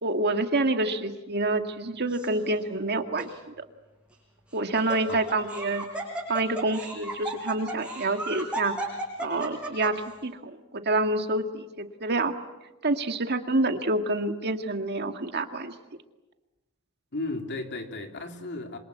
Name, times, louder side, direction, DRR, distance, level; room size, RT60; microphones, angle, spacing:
voice 1, 0.0-3.3 3.6-3.7 4.5-5.9 6.3-8.7 9.2-12.3 12.8-15.7, right 2 dB, 50° right, 6 dB, 2.1 m, -27 dB
Laughter, 2.1-2.6 3.2-3.3 4.5-10.1, right 2 dB, 5° right, 7.3 m, -35 dB
voice 2, 5.1-5.4 17.1-18.8, left 2 dB, 55° left, 5 dB, 3.1 m, -35 dB
27.0 x 26.5 x 8.3 m, 1.1 s
head